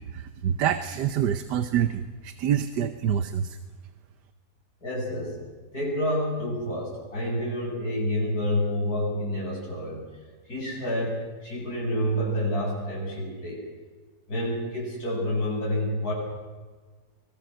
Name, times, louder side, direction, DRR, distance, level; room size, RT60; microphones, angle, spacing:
voice 1, 0.1-3.6, right 9 dB, 80° right, 10 dB, 1.5 m, -26 dB
voice 2, 4.8-5.4 5.7-10.0 10.5-13.6 14.3-16.1, left 1 dB, 65° left, -2 dB, 8.3 m, -28 dB
24.0 x 21.0 x 6.5 m, 1.4 s
omnidirectional pair, 1.8 m